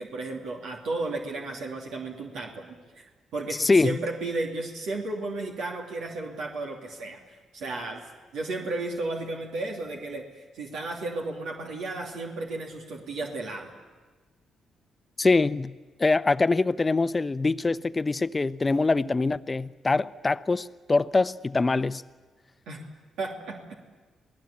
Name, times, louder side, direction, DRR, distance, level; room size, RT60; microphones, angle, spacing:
voice 1, 0.0-3.1 3.3-8.0 8.3-13.8 22.7-22.9 23.2-23.8, right 2 dB, 80° right, 2.9 m, -34 dB
voice 2, 3.6-4.0 15.2-22.0, left 3 dB, 30° left, 0.8 m, -24 dB
27.5 x 18.5 x 8.6 m
supercardioid pair, 55°, 0 cm